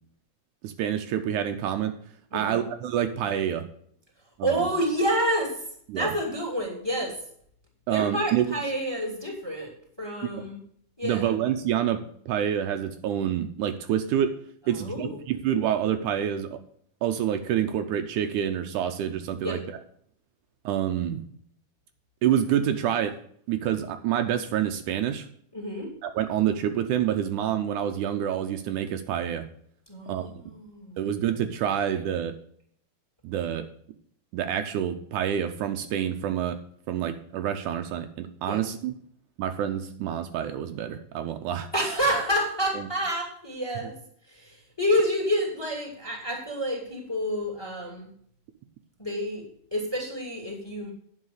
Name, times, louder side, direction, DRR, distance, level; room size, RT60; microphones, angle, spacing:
voice 1, 0.6-1.9 2.3-3.7 4.4-4.5 5.9-6.1 7.9-8.5 11.0-14.3 14.7-16.6 17.0-19.6 20.7-21.2 22.2-23.1 23.5-25.3 26.0-29.5 30.1-30.3 31.0-32.3 33.2-33.7 34.3-36.6 36.9-38.9 39.4-41.7 42.8-42.9, right 10 dB, 75° right, 7 dB, 2.1 m, -27 dB
voice 2, 2.3-2.7 4.4-5.7 5.9-7.2 7.9-10.6 11.0-11.4 14.6-15.2 19.4-19.7 25.5-25.9 29.9-31.0 38.5-38.6 41.7-44.0 44.3-48.1 49.0-50.9, equal, 10° left, 1 dB, 2.2 m, -29 dB
9.6 x 5.9 x 6.4 m, 0.63 s
omnidirectional pair, 3.7 m